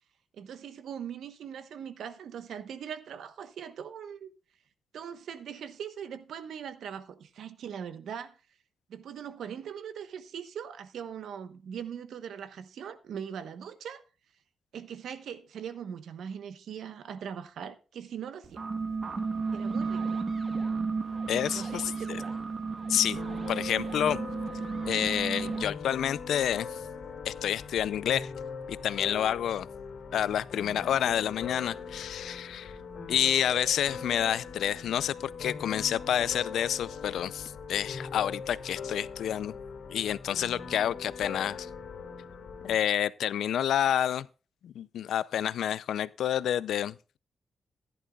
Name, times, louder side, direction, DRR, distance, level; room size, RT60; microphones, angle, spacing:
voice 1, 0.3-4.3 4.9-8.4 8.9-14.0 14.7-18.6 19.5-20.2 21.5-22.3, right 8 dB, 80° right, 1.0 m, -41 dB
sound 1, 18.4-25.7, right 4 dB, 35° right, 1.3 m, -33 dB
voice 2, 21.3-22.2 22.9-23.2 23.5-24.2 24.8-26.8 27.2-28.3 28.7-29.7 30.1-32.8 33.1-39.6 39.9-41.7 42.6-44.3 44.6-47.2, left 10 dB, 90° left, 0.4 m, -29 dB
sound 2, 23.1-42.7, left 5 dB, 70° left, 2.6 m, -41 dB
15.0 x 11.0 x 2.3 m
wide cardioid pair, 140°, 0 cm